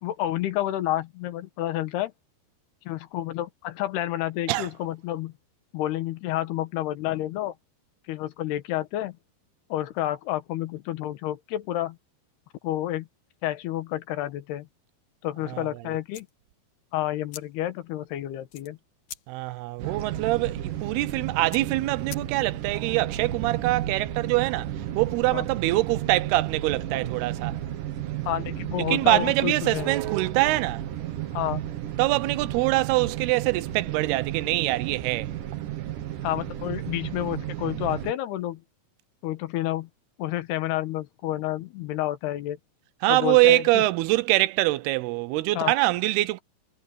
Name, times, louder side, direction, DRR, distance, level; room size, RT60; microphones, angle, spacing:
voice 1, 0.0-2.1 2.9-5.3 5.7-7.5 8.1-9.2 9.7-12.0 12.6-13.1 13.4-14.7 15.2-16.3 16.9-18.8 25.3-25.4 28.2-29.9 31.3-31.6 36.2-38.6 39.2-39.9 40.2-42.6 43.1-43.8 45.5-45.7, left 13 dB, 85° left, 3.3 m, -29 dB
sound 1, 16.1-22.7, left 9 dB, 60° left, 2.9 m, -48 dB
voice 2, 19.3-24.7 25.0-27.5 28.9-30.8 32.0-35.3 43.0-46.4, right 19 dB, 85° right, 2.7 m, -24 dB
sound 2, 19.8-38.1, right 12 dB, 65° right, 2.8 m, -33 dB
omnidirectional pair, 4.5 m